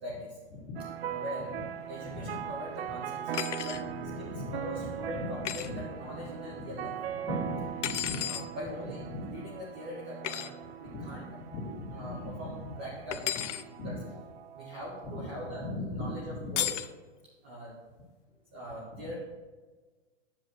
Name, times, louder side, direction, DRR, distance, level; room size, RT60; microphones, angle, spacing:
voice 1, 0.0-0.4 1.1-1.6 1.9-3.3 3.6-3.8 4.2-6.9 8.2-10.5 10.8-11.2 11.9-13.2 13.8-14.0 14.5-16.7 17.4-17.8 18.5-19.2, equal, 10° right, -6 dB, 0.3 m, -42 dB
sound 1, 0.8-15.7, right 9 dB, 60° right, 0.5 m, -40 dB
voice 2, 2.1-2.4 4.0-5.3 5.6-6.1 6.5-8.2 9.1-9.3 10.8-11.2 11.5-12.7 13.8-14.0 15.0-16.6 18.9-19.1, left 2 dB, 45° left, -1 dB, 2.4 m, -39 dB
sound 2, 3.3-3.8 5.4-5.7 7.8-8.5 10.2-10.5 13.1-13.6 16.6-16.9, left 10 dB, 85° left, 0.6 m, -33 dB
9.7 x 7.2 x 3.1 m, 1.4 s
hypercardioid pair, 155°, 35 cm